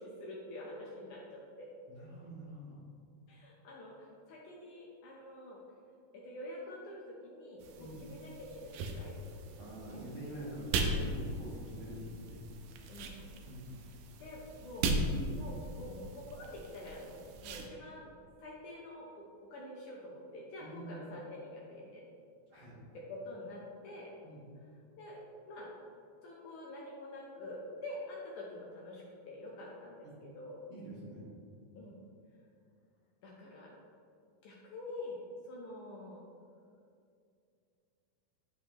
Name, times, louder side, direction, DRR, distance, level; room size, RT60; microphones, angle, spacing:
voice 1, 0.0-1.7 3.3-5.6 6.1-10.0 12.9-13.4 14.2-14.9 15.3-18.1 18.4-19.1 19.5-22.0 22.9-24.1 25.0-25.2 25.5-25.7 26.2-30.1 30.4-30.6 31.8-32.0 33.2-33.7 34.4-35.2 35.4-36.2, left 1 dB, 70° left, -4 dB, 2.0 m, -47 dB
voice 2, 1.9-2.7 7.8-8.0 9.6-12.4 13.4-13.6 20.6-21.0 22.5-22.8 24.2-24.4 30.0-30.1 30.7-31.2, right 1 dB, 50° right, -10 dB, 1.6 m, -46 dB
sound 1, 7.6-17.7, right 2 dB, 80° right, 2.1 m, -38 dB
11.5 x 4.0 x 3.0 m, 2.4 s
omnidirectional pair, 4.2 m